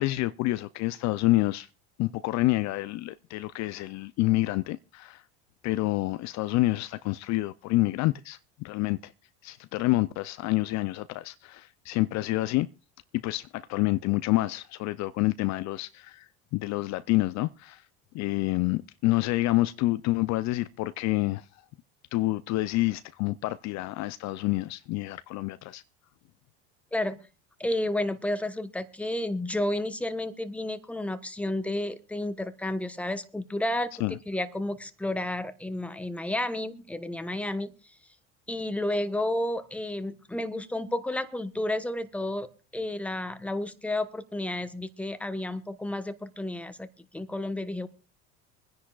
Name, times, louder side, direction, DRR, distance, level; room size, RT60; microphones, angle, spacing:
voice 1, 0.0-1.7 2.0-5.2 5.6-9.1 9.4-12.7 13.1-17.8 18.1-21.5 22.1-25.8 34.0-34.2, left 18 dB, 50° left, 0.5 m, -28 dB
voice 2, 26.9-27.3 27.6-33.9 34.3-37.7 38.5-42.5 42.7-46.9 47.1-47.9, left 1 dB, 5° left, 1.2 m, -31 dB
25.5 x 10.0 x 2.4 m
hypercardioid pair, 85°, 35 cm